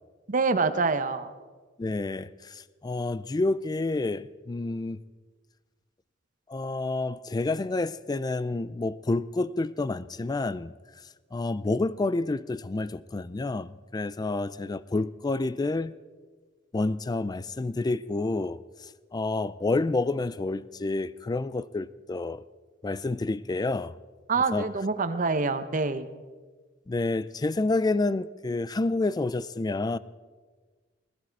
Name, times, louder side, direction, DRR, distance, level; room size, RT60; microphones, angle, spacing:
voice 1, 0.3-1.3 24.3-26.1, right 4 dB, 45° right, 0.8 m, -26 dB
voice 2, 1.8-5.0 6.5-10.7 11.3-15.9 16.7-18.6 19.1-22.4 22.8-23.9 24.5-24.6 26.9-30.0, left 2 dB, 20° left, 0.4 m, -29 dB
20.0 x 12.5 x 4.6 m
head